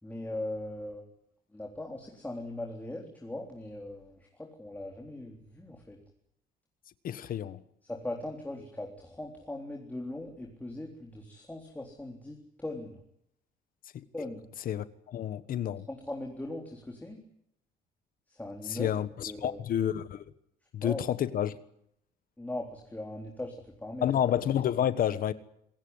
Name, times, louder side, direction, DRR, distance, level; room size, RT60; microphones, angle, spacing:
voice 1, 0.0-1.0 1.5-6.0 7.8-13.0 14.1-14.4 15.9-17.2 18.3-18.9 19.3-19.6 20.8-21.0 22.4-24.1, left 1 dB, 10° left, 3.8 m, -39 dB
voice 2, 7.0-7.6 13.9-14.0 14.7-15.9 18.7-20.2 20.7-21.6 24.0-25.3, left 10 dB, 55° left, 1.3 m, -29 dB
26.5 x 16.0 x 9.7 m
cardioid pair, 110°, 17 cm